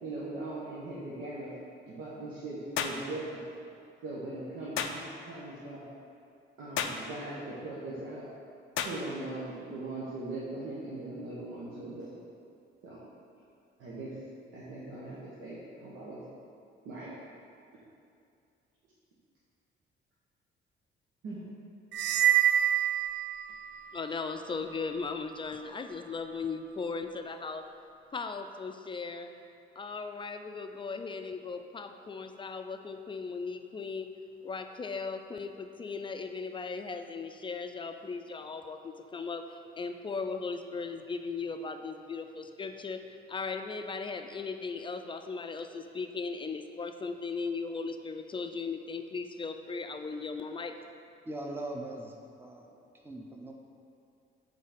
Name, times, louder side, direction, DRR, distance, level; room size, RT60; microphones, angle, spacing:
voice 1, 0.0-1.5 1.9-3.4 4.0-5.9 6.6-8.3 8.8-12.2 12.8-13.0 13.8-14.1 14.5-16.2 16.8-17.1 21.2-21.4, right 2 dB, 90° right, -9 dB, 1.1 m, -40 dB
sound 1, 2.8-3.0 4.8-5.0 6.8-7.0 8.8-9.0, left 8 dB, 85° left, 0.4 m, -32 dB
sound 2, 21.9-23.8, right 10 dB, 65° right, 0.4 m, -26 dB
voice 2, 23.9-27.7 28.1-29.3 29.8-34.1 34.4-50.8, left 4 dB, 25° left, 7 dB, 0.4 m, -37 dB
voice 3, 51.2-52.8 53.0-53.5, right 1 dB, 10° right, 1 dB, 0.7 m, -40 dB
5.5 x 4.0 x 5.0 m, 2.5 s
cardioid pair, 90°, 20 cm